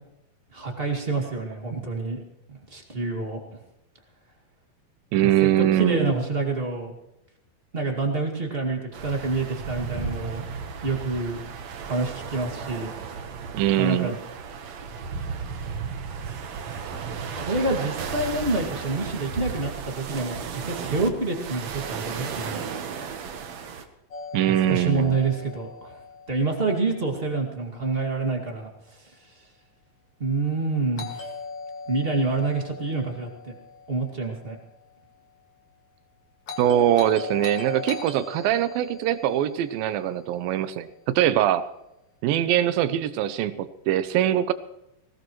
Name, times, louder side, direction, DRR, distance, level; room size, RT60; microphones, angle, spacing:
voice 1, 0.5-2.2 2.5-3.4 5.4-6.9 7.7-10.4 10.8-11.4 11.8-12.9 13.8-14.1 17.3-22.6 24.5-26.0 26.3-29.3 30.2-31.3 31.9-33.5 33.9-34.6, right 3 dB, 20° right, 2 dB, 1.7 m, -27 dB
voice 2, 5.1-6.1 13.5-14.2 24.3-25.2 36.6-40.9 41.2-41.6 42.2-44.5, right 12 dB, 85° right, 12 dB, 2.6 m, -22 dB
sound 1, 8.9-23.8, right 6 dB, 60° right, 2.1 m, -34 dB
Doorbell, 24.1-28.1 31.0-35.2 36.5-40.9, left 4 dB, 45° left, 2.7 m, -40 dB
20.0 x 18.5 x 3.1 m, 0.87 s
omnidirectional pair, 4.1 m